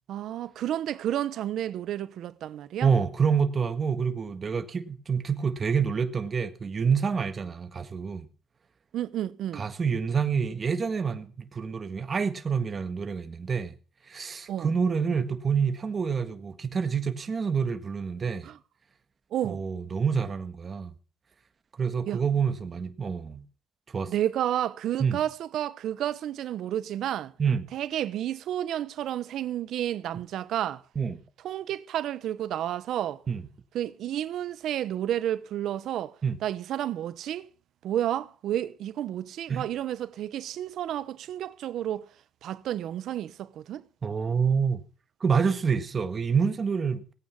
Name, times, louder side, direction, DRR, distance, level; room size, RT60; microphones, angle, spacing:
voice 1, 0.1-2.9 8.9-9.7 14.5-14.7 18.4-18.6 19.3-19.6 22.1-22.2 24.1-27.3 27.7-30.8 31.4-33.2 33.7-37.5 37.8-42.1 42.4-43.8, right 11 dB, 75° right, 0.9 m, -31 dB
voice 2, 2.8-8.3 9.5-13.7 14.1-18.5 19.4-20.9 21.8-23.4 23.9-24.1 25.0-25.2 27.4-27.7 30.9-31.2 33.3-33.4 36.2-36.4 39.5-39.6 44.0-44.8 45.2-47.1, right 6 dB, 40° right, 1.6 m, -27 dB
18.0 x 9.0 x 5.6 m
cardioid pair, 90°, 0 cm